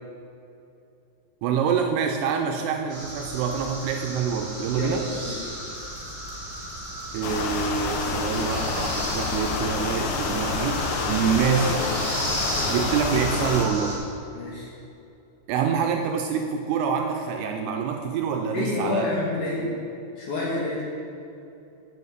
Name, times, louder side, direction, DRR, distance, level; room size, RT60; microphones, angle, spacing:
voice 1, 1.4-5.1 7.1-11.8 12.7-14.0 15.5-19.1, right 7 dB, 80° right, 3 dB, 2.4 m, -26 dB
sound 1, 2.9-14.0, right 1 dB, 40° right, 2.8 m, -34 dB
voice 2, 4.8-5.5 11.1-12.0 12.6-12.8 14.3-14.7 18.5-19.7 20.2-20.8, left 2 dB, 60° left, -5 dB, 2.2 m, -29 dB
sound 2, 7.2-13.7, left 4 dB, 80° left, 2.0 m, -28 dB
7.1 x 6.9 x 8.1 m, 2.7 s
omnidirectional pair, 5.0 m